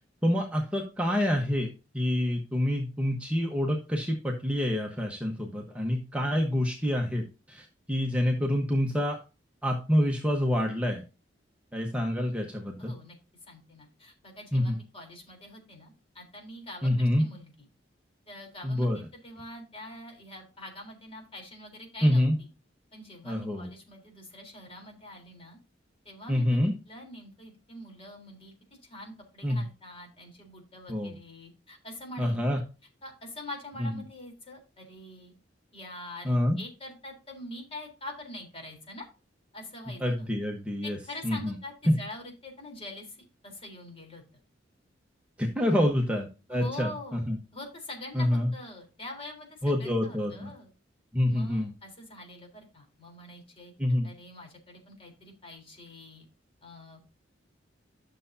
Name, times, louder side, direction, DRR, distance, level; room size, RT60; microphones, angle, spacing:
voice 1, 0.2-9.2 9.6-11.0 11.7-12.9 14.5-14.8 16.8-17.3 18.6-19.0 22.0-22.4 23.2-23.7 26.3-26.7 29.4-29.6 30.9-31.1 32.2-32.6 33.8-33.9 36.2-36.6 40.0-41.0 41.2-41.6 41.9-42.0 45.4-47.4 48.1-48.5 49.6-50.5 51.1-51.7 53.8-54.1, left 1 dB, 5° right, 0 dB, 1.2 m, -27 dB
voice 2, 12.8-13.2 13.5-17.7 18.3-22.5 22.9-25.6 26.0-28.5 28.8-32.6 33.0-35.3 35.7-39.1 39.5-40.3 40.8-43.2 43.4-44.2 45.6-46.0 46.5-47.2 47.5-50.7 51.2-53.7 54.0-56.2 56.6-57.0, left 1 dB, 30° left, 1 dB, 3.8 m, -45 dB
12.0 x 6.8 x 2.7 m, 0.30 s
head